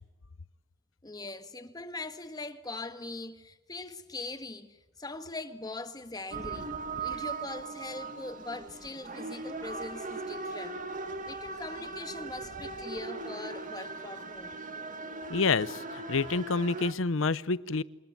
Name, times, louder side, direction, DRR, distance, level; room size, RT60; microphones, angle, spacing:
voice 1, 1.0-6.7 7.0-10.8 11.3-14.6, left 2 dB, 20° left, 1.6 m, -41 dB
sound 1, 6.3-16.9, right 3 dB, 40° right, 2.1 m, -39 dB
voice 2, 15.3-17.8, left 4 dB, 75° left, 0.8 m, -28 dB
27.0 x 20.0 x 9.3 m
head